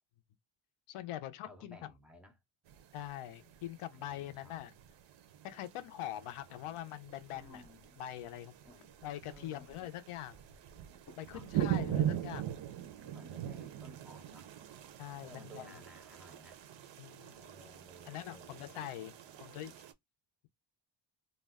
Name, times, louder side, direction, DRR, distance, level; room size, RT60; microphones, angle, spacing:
voice 1, 0.9-1.8 2.9-4.7 5.4-7.6 8.0-8.6 9.0-10.4 11.2-12.5 15.0-15.8 17.0-17.4 18.1-19.1 19.4-19.7, left 12 dB, 85° left, 0.6 m, -43 dB
voice 2, 1.5-2.4 3.9-4.6 7.3-8.0 8.6-9.0 9.3-9.9 11.3-12.0 13.0-14.5 15.2-16.6 17.3-18.8 19.2-19.8, equal, ahead, 0.4 m, -57 dB
sound 1, 2.7-19.9, right 11 dB, 65° right, 0.5 m, -42 dB
sound 2, 7.2-9.2 10.6-13.5, left 4 dB, 40° left, 0.6 m, -63 dB
2.3 x 2.1 x 3.4 m
wide cardioid pair, 165°, 50 cm